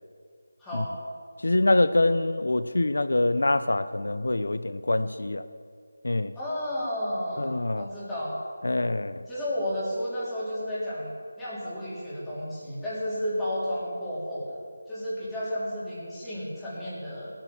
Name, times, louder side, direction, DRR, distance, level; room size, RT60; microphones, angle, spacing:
voice 1, 0.6-0.9 6.4-8.4 9.3-14.6 14.9-17.3, equal, 5° left, -10 dB, 3.6 m, -32 dB
voice 2, 1.4-5.4 6.0-6.3 7.4-7.9 8.6-9.2, left 2 dB, 80° left, 12 dB, 0.7 m, -25 dB
19.0 x 9.0 x 7.2 m, 2.2 s
figure-of-eight pair, 170°, 0 cm